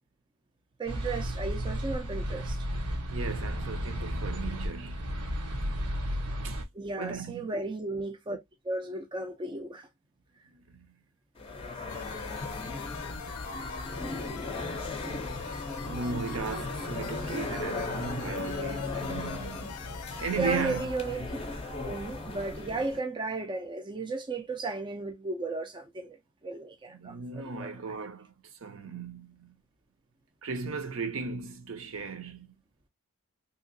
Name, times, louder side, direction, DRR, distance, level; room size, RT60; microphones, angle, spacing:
voice 1, 0.8-2.6 6.7-8.4 8.6-9.9 20.4-21.2 21.8-26.2 26.4-27.7, right 3 dB, 20° right, 0.4 m, -34 dB
sound 1, 0.9-6.6, equal, 85° right, 1.0 m, -33 dB
voice 2, 3.1-5.1 6.4-6.6 7.0-7.5 10.5-10.9 15.8-19.8 20.2-20.9 26.9-28.3 28.6-29.5 30.4-32.5, right 5 dB, 60° right, 0.6 m, -36 dB
sound 2, 11.4-23.0, left 3 dB, 25° left, 0.6 m, -37 dB
sound 3, 11.9-20.9, left 7 dB, 85° left, 0.5 m, -43 dB
3.5 x 2.8 x 2.6 m
head